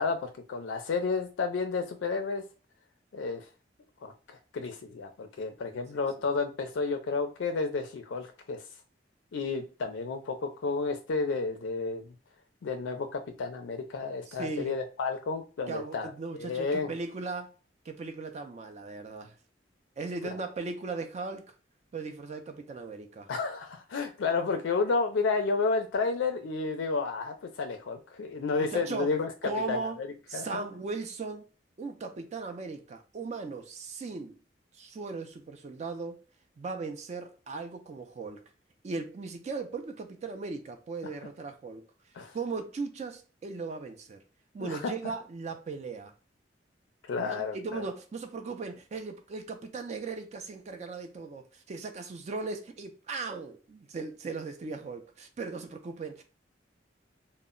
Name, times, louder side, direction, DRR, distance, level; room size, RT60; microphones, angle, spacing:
voice 1, 0.0-2.4 3.1-3.4 4.0-8.6 9.3-12.1 12.6-16.9 23.3-29.3 29.7-30.1 30.3-30.5 42.2-42.3 44.6-44.9 47.1-47.8, left 4 dB, 90° left, 0.4 m, -31 dB
voice 2, 14.3-14.8 15.7-17.5 17.8-19.4 20.0-21.5 21.9-23.3 28.7-29.2 29.4-30.0 30.3-31.5 31.8-34.4 34.7-36.2 36.6-38.4 38.8-41.8 42.3-44.2 44.5-46.1 47.1-56.2, right 4 dB, 40° right, 0.3 m, -38 dB
2.0 x 2.0 x 3.6 m
head